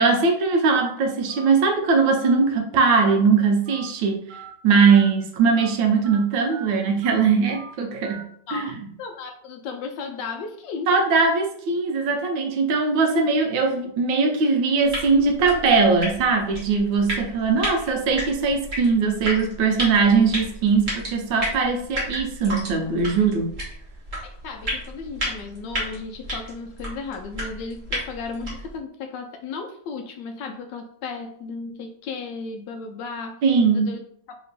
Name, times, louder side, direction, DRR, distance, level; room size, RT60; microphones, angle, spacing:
voice 1, 0.0-4.3 4.6-8.8 10.9-23.5 33.4-33.9, right 4 dB, 75° right, 3 dB, 1.4 m, -20 dB
Telephone, 1.3-1.5 2.2-2.3 3.0-3.2 3.7-3.9 4.3-4.5 4.9-5.1 5.5-5.7 6.0-6.2 6.5-6.7 7.0-7.2 7.5-7.7 8.0-8.2, right 7 dB, 90° right, 1.6 m, -40 dB
voice 2, 9.0-10.9 24.2-33.4 33.7-34.0 34.3-34.4, left 4 dB, 75° left, 4 dB, 1.1 m, -35 dB
sound 1, 14.8-28.8, equal, 30° right, 1.2 m, -33 dB
3.4 x 3.0 x 4.0 m, 0.64 s
omnidirectional pair, 2.2 m